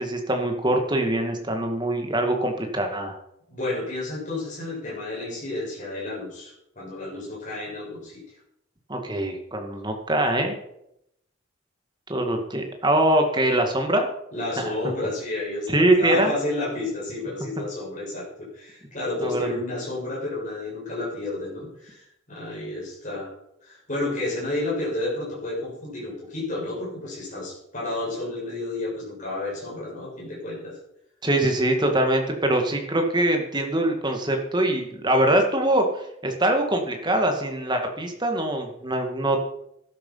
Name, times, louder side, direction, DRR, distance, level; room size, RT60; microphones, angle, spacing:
voice 1, 0.0-3.2 8.9-10.6 12.1-14.1 14.6-14.7 15.7-16.3 19.2-19.5 31.2-39.4, right 1 dB, 20° right, 4 dB, 2.2 m, -23 dB
voice 2, 3.5-8.2 14.3-18.3 18.5-23.3 23.6-30.8, left 2 dB, 35° left, -6 dB, 7.3 m, -31 dB
13.0 x 12.0 x 5.8 m, 0.78 s
head